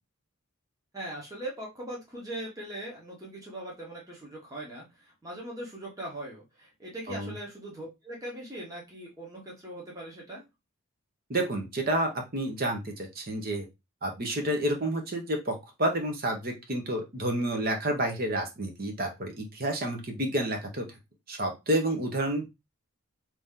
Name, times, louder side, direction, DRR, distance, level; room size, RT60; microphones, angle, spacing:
voice 1, 0.9-10.4, right 1 dB, 15° right, -3 dB, 1.0 m, -40 dB
voice 2, 11.3-13.7 14.0-20.8 21.3-22.5, right 1 dB, 45° right, 4 dB, 0.9 m, -30 dB
3.0 x 2.6 x 3.6 m, 0.23 s
head